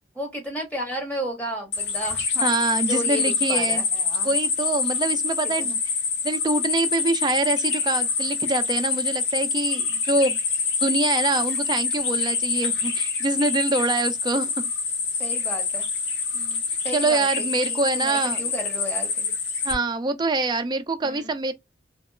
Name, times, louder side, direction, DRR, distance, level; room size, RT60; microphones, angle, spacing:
voice 1, 0.1-2.5 2.8-4.3 5.6-5.8 15.2-15.9 16.8-19.3 21.0-21.3, right 1 dB, 10° left, 0.9 m, -33 dB
sound 1, 1.7-19.7, left 5 dB, 75° left, 0.7 m, -26 dB
voice 2, 2.4-3.8 4.2-5.8 6.2-10.4 10.8-14.5 16.3-16.6 16.9-18.4 19.6-21.5, right 3 dB, 25° right, 0.3 m, -25 dB
2.8 x 2.3 x 2.2 m
head